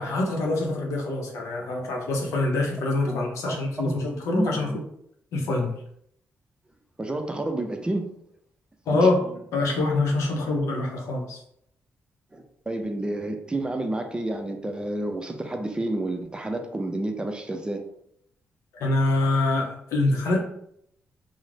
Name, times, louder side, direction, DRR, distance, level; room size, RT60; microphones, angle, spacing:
voice 1, 0.0-4.7 5.3-5.7 8.9-9.2 9.5-11.4 18.7-20.4, left 2 dB, 85° left, 0 dB, 0.6 m, -25 dB
voice 2, 3.1-3.9 4.3-4.8 7.0-8.1 8.9-9.1 12.3-17.8, right 1 dB, 20° right, 5 dB, 0.4 m, -30 dB
2.4 x 2.0 x 3.1 m, 0.73 s
cardioid pair, 70°, 5 cm